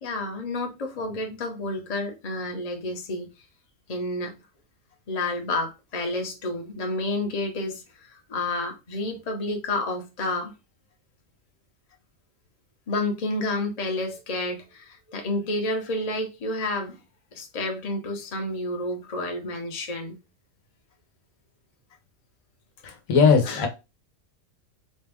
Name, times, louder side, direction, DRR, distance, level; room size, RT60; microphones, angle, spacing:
voice 1, 0.0-3.3 3.9-4.4 5.1-10.5 12.9-17.0 17.3-20.2 23.4-23.7, left 2 dB, 35° left, 0.8 m, -30 dB
voice 2, 22.8-23.7, left 5 dB, 85° left, 1.2 m, -19 dB
4.2 x 2.3 x 3.4 m
omnidirectional pair, 1.4 m